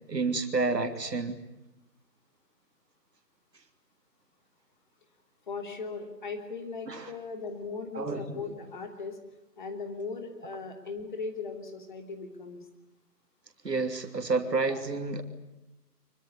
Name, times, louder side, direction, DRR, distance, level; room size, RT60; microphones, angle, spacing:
voice 1, 0.1-1.4 6.9-7.1 7.9-8.4 13.6-15.2, right 3 dB, 80° right, 6 dB, 3.1 m, -29 dB
voice 2, 5.5-9.2 9.6-12.6 14.6-14.8, left 4 dB, 30° left, 5 dB, 3.1 m, -38 dB
25.0 x 23.5 x 9.7 m, 0.95 s
figure-of-eight pair, 165°, 49 cm